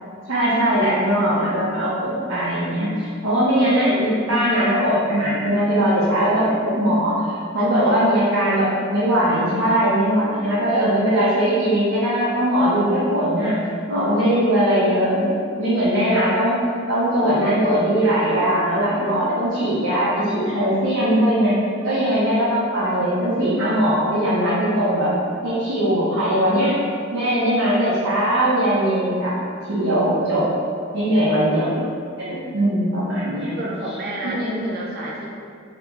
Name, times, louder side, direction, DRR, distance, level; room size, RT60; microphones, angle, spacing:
voice 1, 0.3-13.5 13.9-16.6 16.9-21.5 21.8-25.1 25.4-26.7 27.1-29.3 29.7-30.4 30.9-31.8 32.2-33.5 34.2-34.7, equal, 85° right, -9 dB, 0.7 m, -20 dB
voice 2, 7.6-7.9 31.1-31.2 33.6-35.3, right 1 dB, 45° right, -4 dB, 0.5 m, -30 dB
2.9 x 2.5 x 3.5 m, 2.3 s
head